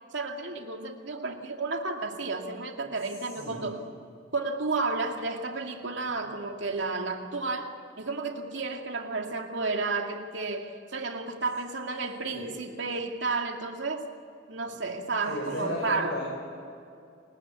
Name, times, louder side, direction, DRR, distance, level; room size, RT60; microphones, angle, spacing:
voice 1, 0.1-3.8 4.3-14.1 14.5-16.2, right 3 dB, 75° right, 2.4 m, -32 dB
voice 2, 3.4-3.7 12.3-12.5 14.7-14.8 15.3-16.2, left 1 dB, 70° left, 6.1 m, -34 dB
29.0 x 21.0 x 8.3 m
head